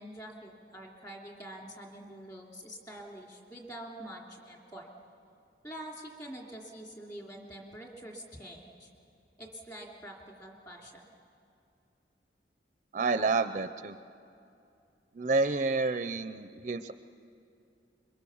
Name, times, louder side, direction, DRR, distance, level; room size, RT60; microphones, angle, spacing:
voice 1, 0.0-4.9 5.6-8.9 9.4-11.1, right 1 dB, 20° left, 0 dB, 2.9 m, -46 dB
voice 2, 12.9-14.0 15.1-16.9, right 3 dB, 40° right, 10 dB, 0.5 m, -29 dB
26.5 x 23.0 x 7.1 m, 2.6 s
head